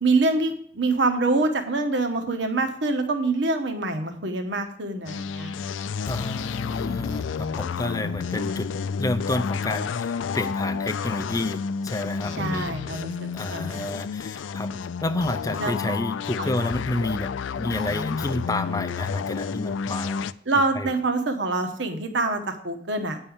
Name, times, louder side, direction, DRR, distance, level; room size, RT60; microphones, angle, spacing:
voice 1, 0.0-5.5 12.4-14.0 15.6-16.0 16.4-16.5 20.5-23.2, right 3 dB, 70° right, 6 dB, 1.0 m, -25 dB
sound 1, 5.1-20.3, left 6 dB, 85° left, 0.4 m, -30 dB
voice 2, 6.0-8.7 9.0-12.7 12.9-13.0 13.3-14.7 15.0-20.3 20.8-20.9, left 2 dB, 20° left, 10 dB, 0.4 m, -30 dB
8.9 x 5.5 x 7.0 m, 0.64 s
head